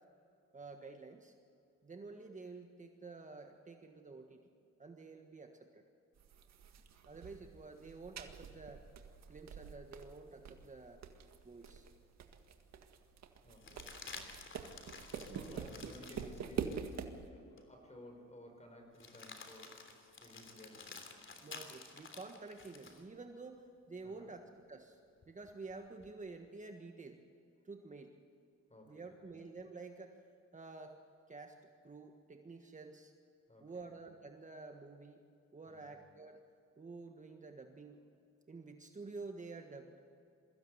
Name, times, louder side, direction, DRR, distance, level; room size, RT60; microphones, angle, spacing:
voice 1, 0.5-1.3 1.8-4.4 4.8-5.8 7.0-8.9 9.3-11.0 11.4-11.9 15.3-15.9 21.4-24.4 24.7-25.0 25.3-27.2 27.6-28.1 28.9-30.2 30.5-31.0 31.3-31.6 31.8-33.1 33.6-35.2 35.5-36.4 36.8-38.0 38.5-40.0, right 3 dB, 25° right, 4 dB, 1.5 m, -50 dB
sound 1, 6.2-17.3, right 7 dB, 60° right, 1.8 m, -46 dB
sound 2, 12.0-12.1 13.6-17.0 17.6-17.7 18.9-23.0 25.2-26.1, left 4 dB, 40° left, 3.2 m, -52 dB
voice 2, 13.4-14.3 15.1-19.9 20.2-21.1 24.0-24.4 28.7-29.3 33.5-33.9 35.7-36.0, left 1 dB, 20° left, 3 dB, 5.9 m, -57 dB
22.5 x 15.5 x 8.1 m, 2.6 s
cardioid pair, 90°, 30 cm